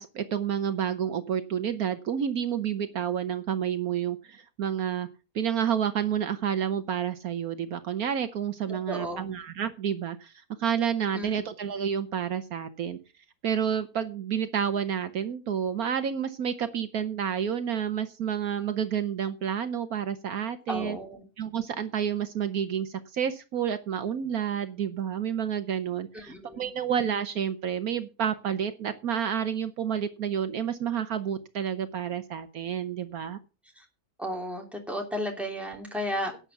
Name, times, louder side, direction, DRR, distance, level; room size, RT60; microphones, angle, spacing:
voice 1, 0.0-5.1 5.3-10.3 10.6-13.0 13.4-21.0 21.4-33.4, right 8 dB, 70° right, 10 dB, 1.4 m, -29 dB
voice 2, 8.7-9.3 11.1-11.3 20.7-21.2 26.1-26.7 33.8-33.9 34.2-36.4, equal, ahead, 1 dB, 3.0 m, -34 dB
11.5 x 8.2 x 5.8 m, 0.33 s
omnidirectional pair, 1.7 m